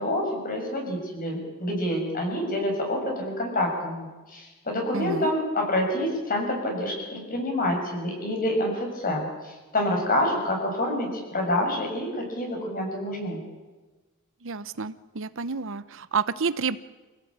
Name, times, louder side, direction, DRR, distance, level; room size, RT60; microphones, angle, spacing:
voice 1, 0.0-13.4, left 1 dB, 40° left, 2 dB, 7.1 m, -27 dB
voice 2, 4.9-5.3 14.4-16.8, right 5 dB, 65° right, 14 dB, 0.9 m, -29 dB
27.0 x 16.5 x 8.8 m, 1.2 s
head